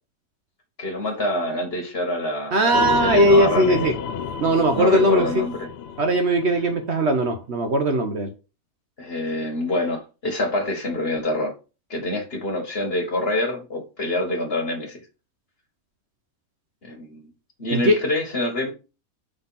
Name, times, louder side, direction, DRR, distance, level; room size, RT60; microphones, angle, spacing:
voice 1, 0.8-3.9 4.7-5.6 9.0-11.5 11.9-15.0 16.8-17.3 17.6-18.7, left 1 dB, 40° left, 3 dB, 1.9 m, -26 dB
voice 2, 2.5-3.9 4.4-5.4 6.0-8.3 17.7-18.0, right 1 dB, 50° right, 5 dB, 1.1 m, -19 dB
sound 1, 2.7-7.1, left 7 dB, 70° left, 0.6 m, -30 dB
5.8 x 3.9 x 5.6 m, 0.31 s
omnidirectional pair, 1.5 m